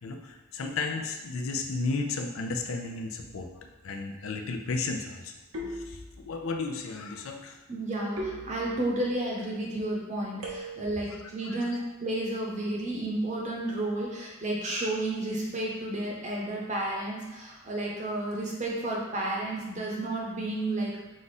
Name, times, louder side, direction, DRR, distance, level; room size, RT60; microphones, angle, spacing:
voice 1, 0.0-5.3 5.7-7.6 8.1-8.2 11.5-11.6, left 3 dB, 75° left, 4 dB, 0.5 m, -34 dB
sound 1, 3.1-3.7 5.5-6.5 8.2-9.1 10.4-11.1, equal, 70° right, 0.9 m, -40 dB
voice 2, 7.7-21.0, right 1 dB, 35° right, -3 dB, 0.8 m, -32 dB
5.0 x 2.4 x 4.1 m, 1.1 s
head